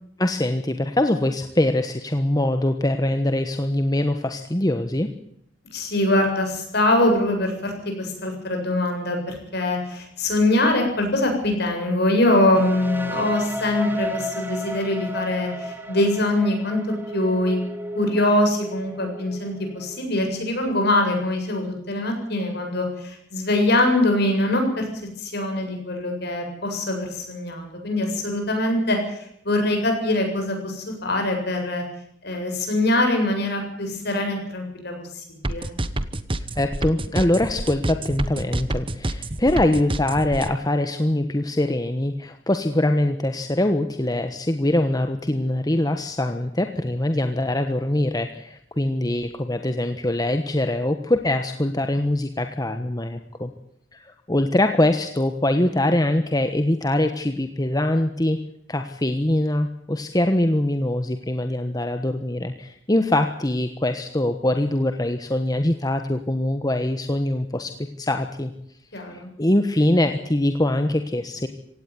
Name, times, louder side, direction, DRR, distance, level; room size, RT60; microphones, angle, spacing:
voice 1, 0.2-5.1 36.6-53.5 53.9-58.4 58.7-67.7 68.0-68.5 69.1-71.5, left 1 dB, 20° left, 7 dB, 1.3 m, -23 dB
voice 2, 5.7-16.8 17.1-17.6 17.9-24.9 25.2-29.2 29.4-31.8 32.2-35.7 68.9-69.3, left 1 dB, 55° left, 3 dB, 7.7 m, -23 dB
sound 1, 12.5-20.3, equal, 10° right, 2.3 m, -33 dB
sound 2, 35.4-40.5, right 1 dB, 25° right, 1.1 m, -27 dB
18.0 x 17.0 x 9.6 m, 0.73 s
head